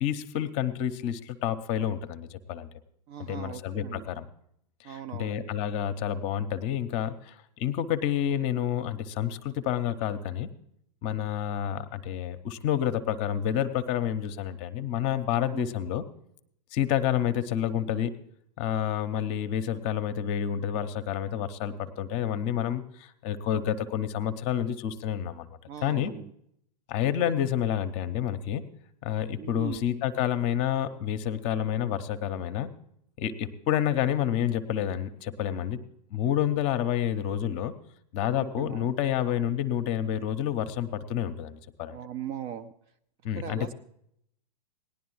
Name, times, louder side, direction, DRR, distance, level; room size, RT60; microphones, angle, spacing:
voice 1, 0.0-2.7 3.2-4.3 4.8-10.5 11.0-16.0 16.7-18.2 18.6-25.5 25.8-26.1 26.9-28.6 29.0-32.7 33.2-35.8 36.1-37.7 38.1-42.0 43.2-43.7, left 10 dB, 30° left, 11 dB, 0.8 m, -29 dB
voice 2, 3.1-4.1 4.8-5.4 15.4-15.7 25.7-26.3 29.4-29.8 38.4-38.9 41.9-42.7 43.4-43.7, right 9 dB, 25° right, 15 dB, 0.4 m, -39 dB
18.5 x 11.0 x 3.0 m, 0.70 s
figure-of-eight pair, 105°, 21 cm